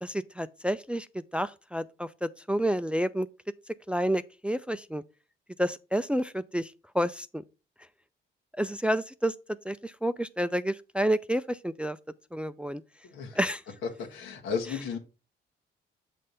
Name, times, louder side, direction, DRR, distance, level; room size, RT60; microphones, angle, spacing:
voice 1, 0.0-3.3 3.9-5.0 5.6-7.4 8.6-9.3 9.7-12.0 12.3-12.8 13.4-13.6, equal, 5° right, 0.3 m, -29 dB
voice 2, 13.0-13.4 14.0-15.0, left 6 dB, 90° left, 1.3 m, -34 dB
6.6 x 3.3 x 5.4 m
cardioid pair, 90°, 20 cm